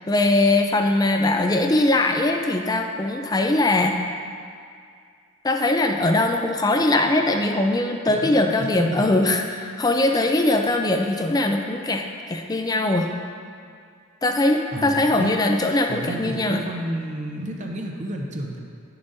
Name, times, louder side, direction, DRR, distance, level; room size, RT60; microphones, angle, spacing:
voice 1, 0.1-4.0 5.4-13.1 14.2-16.6, left 2 dB, 15° left, 4 dB, 0.4 m, -21 dB
voice 2, 14.7-15.3 15.9-18.6, right 1 dB, 35° right, 1 dB, 0.7 m, -31 dB
11.0 x 6.9 x 2.7 m, 2.2 s
head